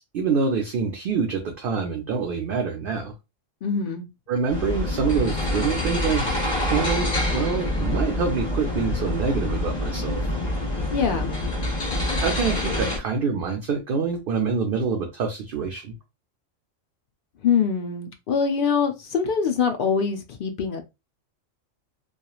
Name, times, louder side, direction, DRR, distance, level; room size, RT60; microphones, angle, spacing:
voice 1, 0.1-3.1 4.3-6.3 6.7-10.3 12.2-15.9, right 5 dB, 60° right, 0.6 m, -26 dB
voice 2, 3.6-4.0 10.9-11.3 17.4-20.9, left 6 dB, 60° left, 0.5 m, -24 dB
sound 1, 4.5-13.0, left 1 dB, 35° left, 1.0 m, -26 dB
3.0 x 2.4 x 2.3 m
omnidirectional pair, 1.4 m